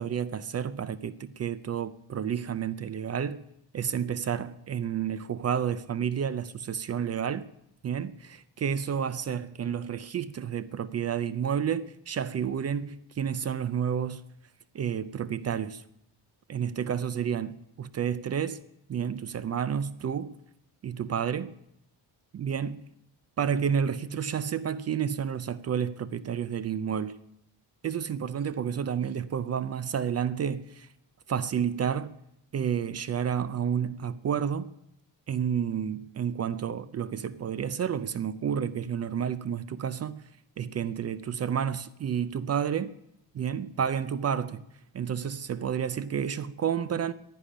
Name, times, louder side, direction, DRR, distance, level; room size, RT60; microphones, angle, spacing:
voice 1, 0.0-3.4 3.7-7.4 7.8-14.2 14.7-15.8 16.5-18.6 18.9-20.4 20.8-21.5 22.3-22.8 23.4-27.2 27.8-30.9 31.3-32.1 32.5-34.7 35.3-40.2 40.6-42.9 43.3-44.6 44.9-47.1, right 8 dB, 35° right, 0.4 m, -30 dB
11.0 x 10.0 x 9.9 m
cardioid pair, 165°, 44 cm